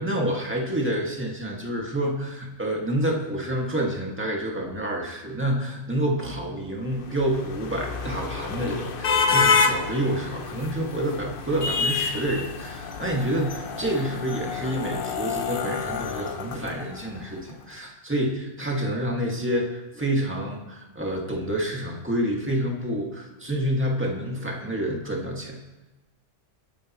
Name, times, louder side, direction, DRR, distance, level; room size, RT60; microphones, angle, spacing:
voice 1, 0.0-25.6, right 1 dB, 10° right, -1 dB, 2.1 m, -28 dB
sound 1, 6.9-17.3, left 5 dB, 50° left, 1.0 m, -28 dB
27.0 x 9.9 x 3.1 m, 1.0 s
omnidirectional pair, 1.2 m